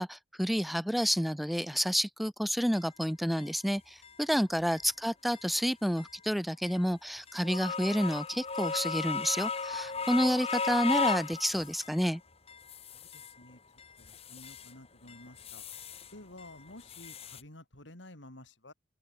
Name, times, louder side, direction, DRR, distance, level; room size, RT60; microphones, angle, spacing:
voice 1, 0.0-12.2, equal, ahead, 1.2 m, -30 dB
sound 1, 2.7-2.8 3.4-3.5 4.0-4.1 4.7-4.8 5.3-5.5 6.0-6.1 6.6-6.7 7.3-12.0 12.5-13.4 13.8-14.7 15.1-16.1 16.4-17.4, left 5 dB, 30° left, 1.5 m, -36 dB
voice 2, 12.9-13.6 14.0-15.7 16.1-18.7, left 1 dB, 75° left, 5.2 m, -52 dB
open air
head